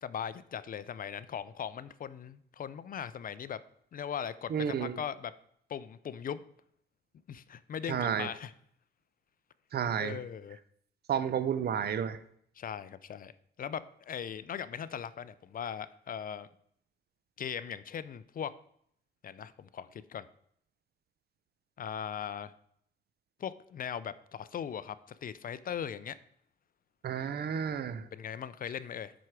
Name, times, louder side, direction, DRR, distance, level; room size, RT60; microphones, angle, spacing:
voice 1, 0.0-3.6 3.9-5.3 5.7-6.4 7.3-8.5 10.0-10.6 12.6-13.3 13.6-16.5 17.4-18.5 19.2-20.3 21.8-22.5 23.4-26.2 28.1-29.1, left 8 dB, 45° left, 16 dB, 0.5 m, -39 dB
voice 2, 4.5-5.0 7.9-8.3 9.7-10.2 11.1-12.2 27.0-28.1, right 8 dB, 55° right, 14 dB, 0.7 m, -31 dB
7.7 x 6.1 x 4.8 m, 0.67 s
cardioid pair, 90°, 20 cm